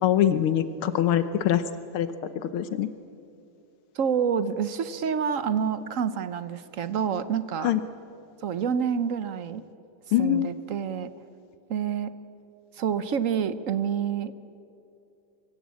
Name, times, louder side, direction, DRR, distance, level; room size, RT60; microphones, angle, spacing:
voice 1, 0.0-1.6 1.9-2.1 2.4-2.9 7.6-7.8 10.1-10.5, left 11 dB, 80° left, 11 dB, 1.7 m, -23 dB
voice 2, 3.9-7.7 8.4-9.6 10.2-11.1 11.7-12.1 12.8-14.3, right 7 dB, 65° right, 13 dB, 0.8 m, -28 dB
24.0 x 23.5 x 8.5 m, 2.7 s
omnidirectional pair, 2.4 m